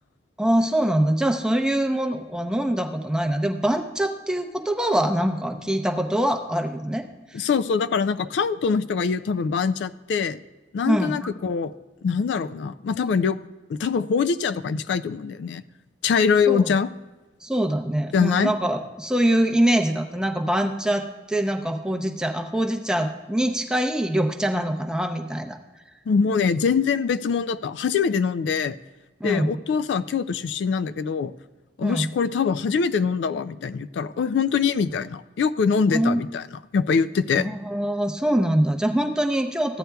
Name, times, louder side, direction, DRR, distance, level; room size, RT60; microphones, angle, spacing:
voice 1, 0.4-7.0 7.3-7.5 10.9-11.2 16.5-16.7 17.4-25.6 29.2-29.6 31.8-32.1 35.9-36.2 37.3-39.8, right 1 dB, 5° right, 4 dB, 0.6 m, -24 dB
voice 2, 7.3-10.4 10.7-11.7 12.0-13.4 13.7-15.6 16.0-16.9 18.1-18.5 26.1-28.8 29.2-31.3 31.8-36.4 36.7-37.5, left 6 dB, 70° left, 14 dB, 0.3 m, -23 dB
14.5 x 9.3 x 2.3 m, 1.2 s
head